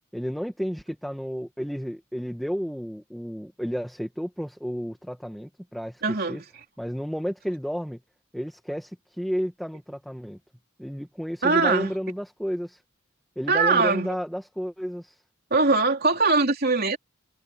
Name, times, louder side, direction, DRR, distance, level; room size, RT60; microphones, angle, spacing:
voice 1, 0.1-6.0 6.3-6.4 6.8-8.0 8.3-10.4 10.8-12.8 13.4-15.2, equal, ahead, 1.8 m, -32 dB
voice 2, 6.0-6.4 11.4-11.9 13.5-14.2 15.5-17.0, right 3 dB, 45° right, 3.5 m, -22 dB
head